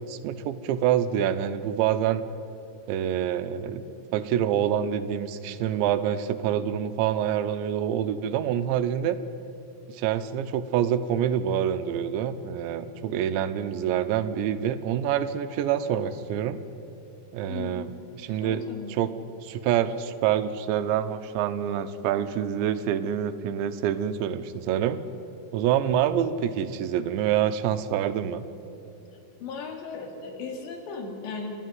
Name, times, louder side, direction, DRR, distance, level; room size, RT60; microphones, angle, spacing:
voice 1, 0.1-2.2 2.9-3.8 4.1-9.2 9.9-16.6 17.3-17.9 18.2-18.6 18.9-19.1 19.4-25.0 25.5-28.4, right 10 dB, 90° right, 11 dB, 3.2 m, -26 dB
voice 2, 17.5-17.9 18.3-18.9 29.4-31.6, left 4 dB, 75° left, 3 dB, 4.7 m, -36 dB
30.0 x 12.5 x 9.4 m, 2.9 s
omnidirectional pair, 5.1 m